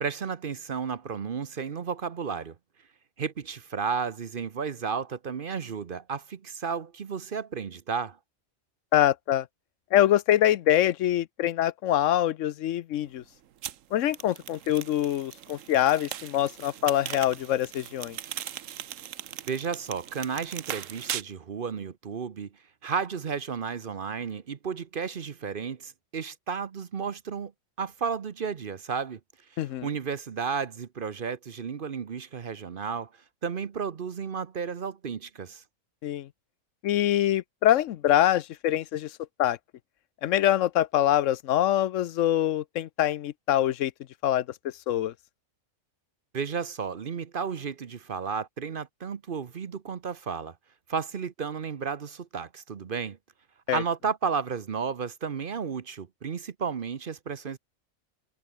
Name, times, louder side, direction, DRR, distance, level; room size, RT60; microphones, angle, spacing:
voice 1, 0.0-2.5 3.2-8.2 19.5-22.5 22.8-27.5 27.8-29.2 29.5-33.1 33.4-35.6 46.3-50.5 50.9-53.2 53.7-57.6, right 6 dB, 50° right, 1.0 m, -33 dB
voice 2, 8.9-9.5 9.9-13.2 13.9-18.2 29.6-29.9 36.0-36.3 36.8-39.1 39.4-39.6 40.2-43.9 44.2-44.4 44.9-45.1 53.7-53.8, left 12 dB, 80° left, 1.0 m, -24 dB
sound 1, 13.6-21.2, right 10 dB, 90° right, 1.2 m, -39 dB
omnidirectional pair, 1.3 m